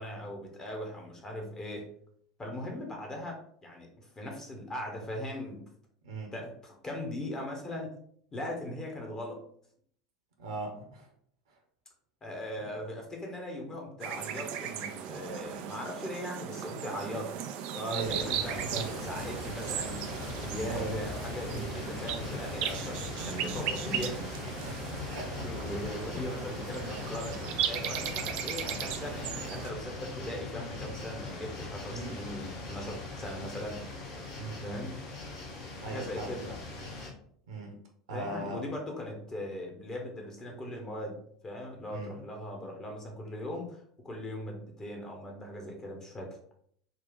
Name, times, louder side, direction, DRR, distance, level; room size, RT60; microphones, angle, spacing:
voice 1, 0.0-1.9 2.4-5.7 6.3-8.0 8.3-9.4 12.2-17.3 17.7-20.1 20.4-24.4 25.4-33.9 34.6-35.0 35.8-36.5 38.1-46.4, left 1 dB, 20° left, 1 dB, 1.1 m, -39 dB
voice 2, 10.4-11.1 12.6-12.7 17.9-18.9 20.7-21.1 21.5-21.9 24.6-25.3 31.9-32.2 34.3-34.9 35.8-36.6 37.5-37.7 38.1-38.6 41.9-42.1, right 3 dB, 65° right, 2 dB, 1.0 m, -39 dB
sound 1, 14.0-29.7, right 9 dB, 45° right, 0.4 m, -37 dB
sound 2, 18.0-37.1, left 3 dB, 50° left, 1.3 m, -40 dB
4.1 x 2.4 x 3.8 m, 0.63 s
figure-of-eight pair, 75°, 3 cm